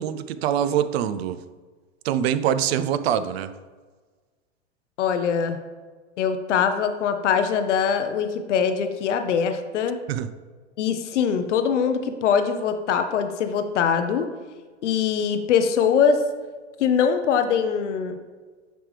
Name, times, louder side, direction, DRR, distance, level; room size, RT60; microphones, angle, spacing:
voice 1, 0.0-1.4 2.0-3.5 10.1-10.3, right 9 dB, 60° right, 13 dB, 0.5 m, -24 dB
voice 2, 5.0-5.6 6.2-10.0 10.8-14.3 14.8-16.2 16.8-18.2, left 7 dB, 80° left, 7 dB, 0.7 m, -22 dB
9.1 x 3.4 x 3.2 m, 1.4 s
hypercardioid pair, 125°, 35 cm